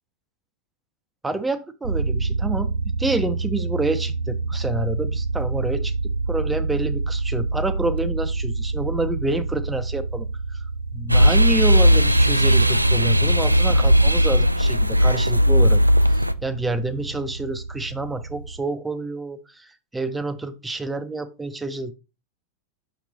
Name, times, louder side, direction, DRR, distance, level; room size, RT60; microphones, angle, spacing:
voice 1, 1.2-2.7 3.0-5.9 6.3-10.7 10.9-15.8 16.1-21.9, right 2 dB, 10° right, 0.6 m, -28 dB
sound 1, 1.8-18.6, right 3 dB, 65° right, 0.7 m, -29 dB
sound 2, 11.1-16.3, equal, 85° right, 0.3 m, -17 dB
5.9 x 5.9 x 2.8 m
figure-of-eight pair, 90°, 0 cm